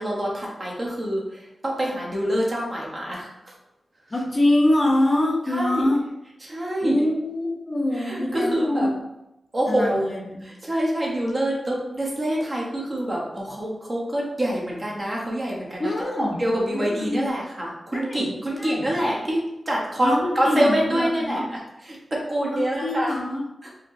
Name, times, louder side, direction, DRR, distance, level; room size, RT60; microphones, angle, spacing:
voice 1, 0.0-3.3 5.5-5.9 6.4-7.0 8.0-8.9 9.5-10.1 10.7-15.9 16.2-19.4 19.7-21.6 21.9-22.0 22.3-23.1, right 1 dB, 30° right, -3 dB, 0.9 m, -26 dB
voice 2, 4.1-6.0 6.8-9.0 9.7-10.4 15.8-16.4 16.7-17.3 17.9-18.3 18.6-18.9 20.0-21.4 22.5-23.4, left 1 dB, 25° left, 0 dB, 0.6 m, -24 dB
4.4 x 2.8 x 2.6 m, 0.90 s
wide cardioid pair, 145°, 0 cm